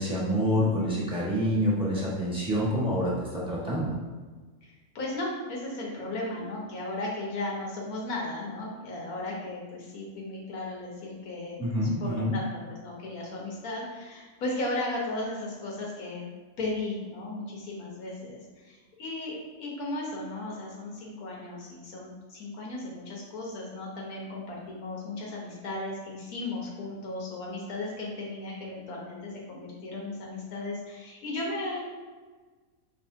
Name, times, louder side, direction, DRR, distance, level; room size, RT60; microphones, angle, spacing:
voice 1, 0.0-3.9 11.6-12.3, equal, 5° right, -7 dB, 1.3 m, -27 dB
voice 2, 4.6-16.3 16.6-31.8, left 2 dB, 80° left, -3 dB, 1.5 m, -36 dB
5.2 x 3.3 x 2.7 m, 1.3 s
omnidirectional pair, 1.5 m